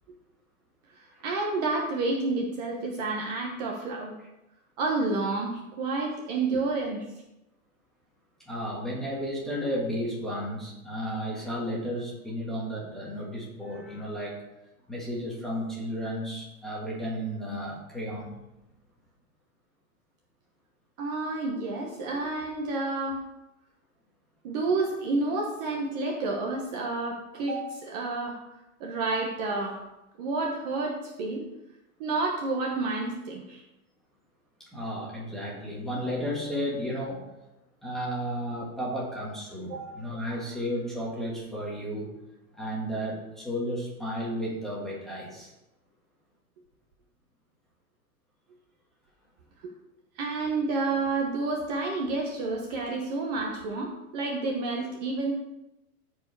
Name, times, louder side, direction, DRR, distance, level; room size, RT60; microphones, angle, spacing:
voice 1, 0.9-4.1 4.8-7.1 21.0-23.2 24.4-28.4 28.8-29.8 30.2-31.4 32.0-33.6 39.7-39.9 50.2-55.3, right 3 dB, 30° right, 0 dB, 1.0 m, -30 dB
voice 2, 8.5-14.4 14.9-18.3 34.6-37.2 37.8-42.1 42.5-45.5, equal, ahead, -5 dB, 1.4 m, -33 dB
14.0 x 4.8 x 4.6 m, 0.95 s
supercardioid pair, 175°, 44 cm